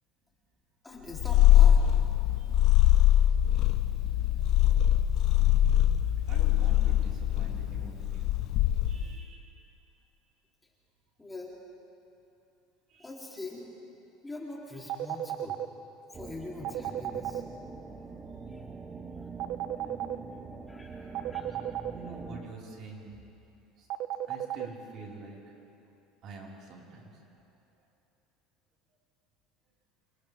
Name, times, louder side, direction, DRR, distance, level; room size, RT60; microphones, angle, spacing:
voice 1, 0.8-1.9 11.2-11.6 13.0-13.7 14.2-15.6 16.1-17.4 18.5-18.6 20.7-21.6, left 2 dB, 10° left, -3 dB, 3.3 m, -43 dB
Purr, 1.1-9.2, left 12 dB, 55° left, 0.9 m, -23 dB
voice 2, 6.3-8.3 8.9-9.6 12.9-13.1 20.8-21.1 21.9-23.2 23.8-23.9 24.3-25.5 26.2-27.4, right 3 dB, 50° right, -4 dB, 4.9 m, -46 dB
sound 1, 14.9-15.7 16.6-17.4 19.4-20.2 21.1-21.9 23.9-24.7, right 12 dB, 65° right, 0.9 m, -32 dB
sound 2, 16.1-22.4, right 4 dB, 20° right, 1.4 m, -44 dB
29.0 x 28.0 x 3.6 m, 2.8 s
supercardioid pair, 130°, 0 cm